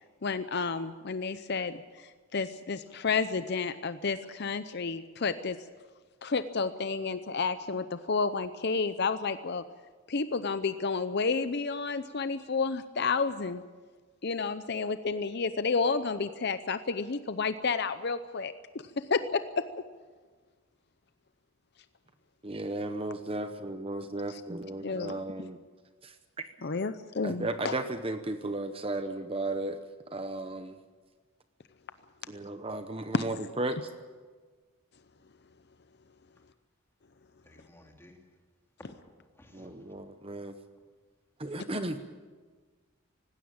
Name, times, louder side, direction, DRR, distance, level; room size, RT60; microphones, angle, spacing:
voice 1, 0.2-5.6 6.2-9.6 10.1-13.6 14.2-18.5 19.1-19.6 24.3-24.4 24.8-25.2 26.6-27.8 33.1-33.3, left 4 dB, 50° left, 12 dB, 0.6 m, -31 dB
voice 2, 22.4-25.6 26.0-26.5 27.2-29.8 30.1-30.7 32.3-33.9 39.5-40.5 41.4-42.0, right 2 dB, 25° right, 9 dB, 0.8 m, -35 dB
voice 3, 37.4-38.2 39.3-40.0, left 1 dB, 10° left, 1 dB, 3.0 m, -57 dB
19.0 x 17.0 x 8.7 m, 1.4 s
head